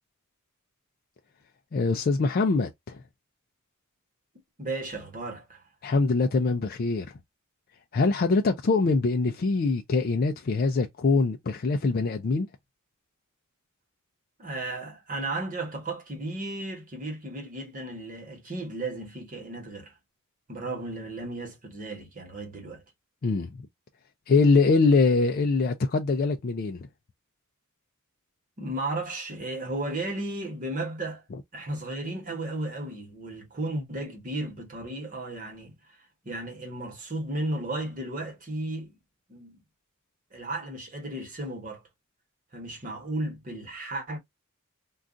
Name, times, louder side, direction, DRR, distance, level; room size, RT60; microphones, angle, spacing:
voice 1, 1.7-3.0 5.8-7.2 7.9-12.5 23.2-23.5 24.3-26.9, left 3 dB, 45° left, 0.4 m, -23 dB
voice 2, 4.6-5.6 14.4-19.9 20.5-22.8 28.6-31.2 31.5-35.8 36.2-39.0 39.3-39.6 40.3-41.8 42.5-44.2, right 2 dB, 40° right, 1.2 m, -34 dB
2.4 x 2.3 x 3.7 m
head